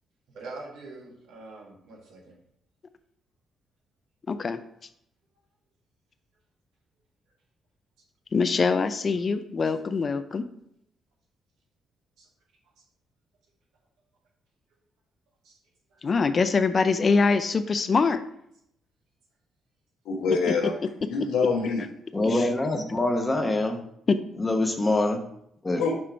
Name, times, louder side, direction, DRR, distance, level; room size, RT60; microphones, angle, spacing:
voice 1, 0.3-2.4 10.3-10.4 12.2-12.3 15.4-15.6 15.9-16.0, right 3 dB, 80° right, -2 dB, 1.7 m, -44 dB
voice 2, 4.3-4.6 8.3-10.4 16.0-18.2 22.3-22.4 24.1-24.2, left 4 dB, 40° left, 11 dB, 0.4 m, -23 dB
voice 3, 20.0-21.8 25.8-25.9, left 4 dB, 90° left, 0 dB, 1.4 m, -26 dB
voice 4, 22.1-23.8 24.4-25.2 25.6-25.8, left 2 dB, 20° left, 4 dB, 1.0 m, -24 dB
6.0 x 3.1 x 5.6 m, 0.73 s
cardioid pair, 90°, 0 cm